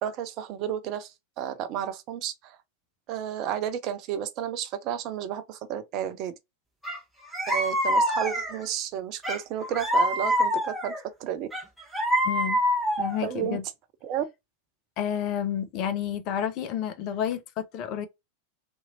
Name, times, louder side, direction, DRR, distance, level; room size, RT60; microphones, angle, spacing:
voice 1, 0.0-2.6 3.1-6.3 7.5-11.5 13.2-13.6 14.0-14.2, right 10 dB, 40° right, 0.5 m, -32 dB
sound 1, 6.8-7.0 7.3-8.7 9.2-11.0 11.5-13.3, equal, 5° right, 1.1 m, -25 dB
voice 2, 12.2-12.6 13.0-13.6 15.0-18.1, left 9 dB, 40° left, 0.5 m, -30 dB
2.7 x 2.6 x 2.6 m
figure-of-eight pair, 90°, 0 cm